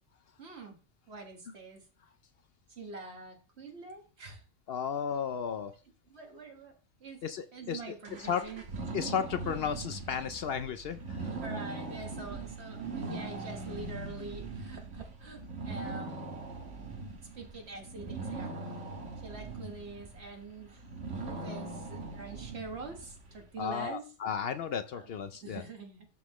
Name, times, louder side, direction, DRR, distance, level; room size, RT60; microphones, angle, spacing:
voice 1, 0.4-0.8 1.1-1.9 2.7-4.4 6.1-7.2 7.5-8.6 11.4-16.4 17.3-18.9 19.2-24.1 24.9-25.1 25.4-26.1, right 3 dB, 60° right, 2 dB, 1.8 m, -45 dB
voice 2, 4.7-5.7 7.2-7.8 8.2-8.4 8.9-11.3 23.6-25.6, left 7 dB, 65° left, 10 dB, 0.7 m, -34 dB
sound 1, 8.0-23.5, right 3 dB, 85° right, 1.6 m, -41 dB
11.5 x 3.9 x 3.0 m, 0.35 s
omnidirectional pair, 1.2 m